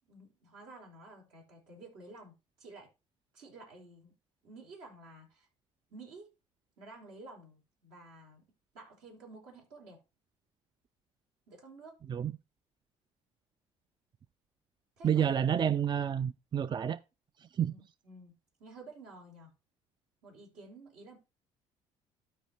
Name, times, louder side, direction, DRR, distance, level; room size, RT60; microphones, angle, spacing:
voice 1, 0.1-2.9 3.3-4.1 4.4-5.5 5.9-6.3 6.8-8.4 8.7-10.0 11.5-12.0 15.0-15.6 17.6-18.3 18.6-19.5 20.2-21.2, right 2 dB, 75° right, 4.7 m, -52 dB
voice 2, 15.0-17.0 17.6-17.7, right 8 dB, 30° right, 0.4 m, -29 dB
12.5 x 4.8 x 4.3 m
hypercardioid pair, 60°, 15 cm